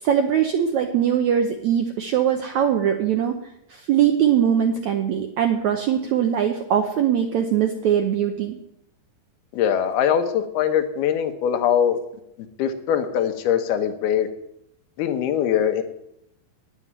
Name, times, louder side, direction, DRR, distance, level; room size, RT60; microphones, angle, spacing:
voice 1, 0.0-3.4 3.7-8.6, right 9 dB, 75° right, 5 dB, 1.7 m, -21 dB
voice 2, 9.5-12.0 12.6-14.3 15.0-15.8, left 9 dB, 80° left, 7 dB, 3.1 m, -22 dB
9.8 x 9.7 x 9.0 m, 0.80 s
omnidirectional pair, 4.4 m